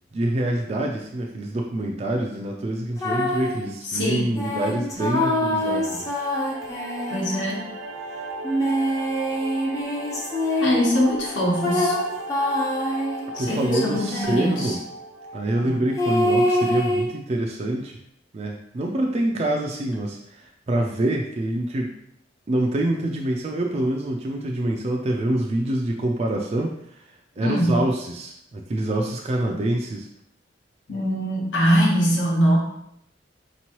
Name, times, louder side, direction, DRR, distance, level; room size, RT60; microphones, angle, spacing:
voice 1, 0.1-6.1 13.4-14.8 15.3-18.0 18.3-22.0 22.5-30.1, right 1 dB, 35° right, 0 dB, 0.3 m, -26 dB
sound 1, 3.0-3.6 4.3-7.6 8.4-11.0 11.6-14.7 16.0-17.1, left 1 dB, 15° left, 0.5 m, -25 dB
voice 2, 3.9-4.4 7.1-7.7 10.6-12.0 13.3-14.7 15.6-15.8 27.4-27.8 30.9-32.6, equal, 70° left, -2 dB, 1.1 m, -22 dB
sound 2, 5.1-16.2, right 2 dB, 75° right, 0.7 m, -37 dB
4.5 x 3.0 x 2.9 m, 0.73 s
head